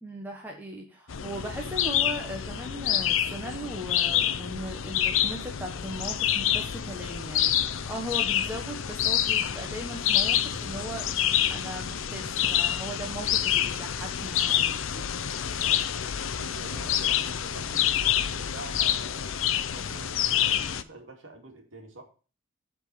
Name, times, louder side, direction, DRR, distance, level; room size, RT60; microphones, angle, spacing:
voice 1, 0.0-11.1 11.5-15.1, equal, 10° right, -1 dB, 1.4 m, -38 dB
sound 1, 1.1-20.8, left 10 dB, 75° left, 0.6 m, -27 dB
voice 2, 14.9-15.4 16.3-19.3 19.7-22.0, right 3 dB, 70° right, 2 dB, 2.3 m, -46 dB
8.1 x 4.6 x 6.9 m, 0.36 s
head